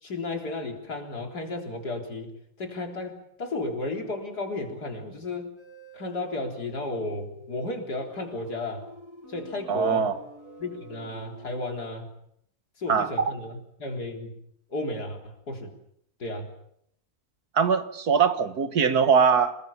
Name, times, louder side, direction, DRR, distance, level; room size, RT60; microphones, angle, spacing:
voice 1, 0.0-5.5 5.9-8.9 9.3-10.1 10.6-12.1 12.8-14.4 14.7-15.7 16.2-16.5, left 2 dB, 90° left, 4.3 m, -33 dB
sound 1, 5.6-11.9, right 1 dB, 45° right, 7.8 m, -48 dB
voice 2, 9.7-10.1 12.9-13.3 17.6-19.6, right 6 dB, 75° right, 2.1 m, -22 dB
26.5 x 21.0 x 7.2 m
omnidirectional pair, 1.7 m